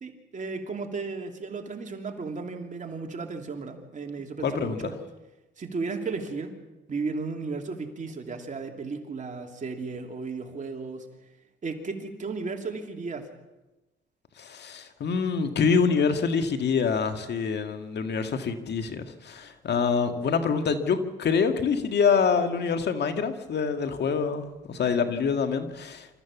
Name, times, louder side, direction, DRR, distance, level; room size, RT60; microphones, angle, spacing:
voice 1, 0.0-5.0 5.6-6.6 6.9-11.1 11.6-13.3, right 4 dB, 40° right, 3 dB, 3.0 m, -34 dB
voice 2, 4.4-4.8 14.4-26.2, left 5 dB, 60° left, 7 dB, 1.9 m, -26 dB
26.0 x 14.5 x 7.2 m, 1.1 s
cardioid pair, 90°, 20 cm